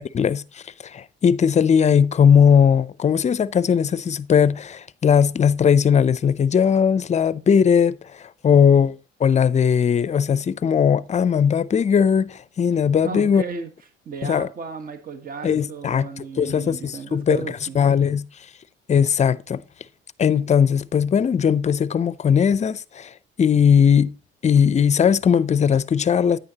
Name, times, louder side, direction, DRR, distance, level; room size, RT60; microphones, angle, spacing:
voice 1, 0.1-13.4 14.2-14.5 15.4-17.4 17.7-18.3 18.9-19.6 20.2-23.1 23.4-24.1 24.4-26.4, left 7 dB, 35° left, 0.5 m, -19 dB
voice 2, 13.0-13.7 14.0-17.8, right 6 dB, 40° right, 1.4 m, -34 dB
9.6 x 9.1 x 2.9 m
supercardioid pair, 85°, 21 cm